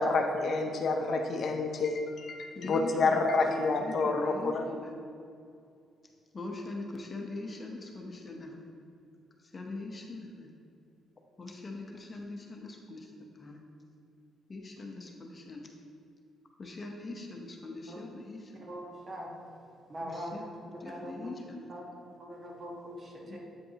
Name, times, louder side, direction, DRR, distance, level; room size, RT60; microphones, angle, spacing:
voice 1, 0.0-4.6, left 3 dB, 55° left, 4 dB, 0.6 m, -28 dB
voice 2, 2.5-3.2 3.5-5.0 6.3-8.7 9.5-10.5 11.4-13.6 14.5-15.7 16.6-18.6 20.0-20.4 20.8-21.6 23.2-23.4, left 2 dB, 35° left, 1 dB, 0.9 m, -42 dB
voice 3, 18.6-21.3 21.7-23.4, equal, 40° right, -2 dB, 1.3 m, -43 dB
8.5 x 5.1 x 2.9 m, 2.4 s
cardioid pair, 90°, 0 cm